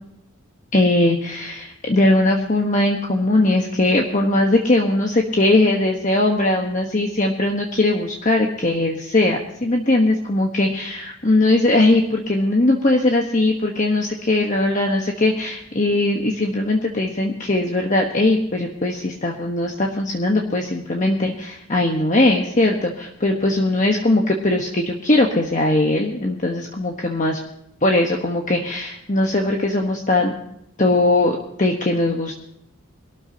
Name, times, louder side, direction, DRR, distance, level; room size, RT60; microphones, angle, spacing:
voice 1, 0.7-27.4 27.8-30.3 30.8-32.3, left 2 dB, 35° left, 1 dB, 1.2 m, -20 dB
22.5 x 13.0 x 2.9 m, 0.80 s
head